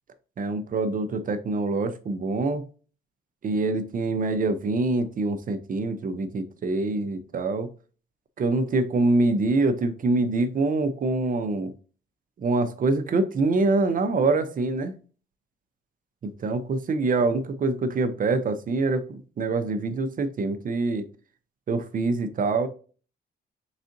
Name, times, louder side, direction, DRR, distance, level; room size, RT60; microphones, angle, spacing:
voice 1, 0.4-2.6 3.4-7.7 8.4-11.7 12.4-14.9 16.4-21.1 21.7-22.7, right 3 dB, 45° right, 0.6 m, -25 dB
4.0 x 3.6 x 2.6 m
cardioid pair, 90°, 20 cm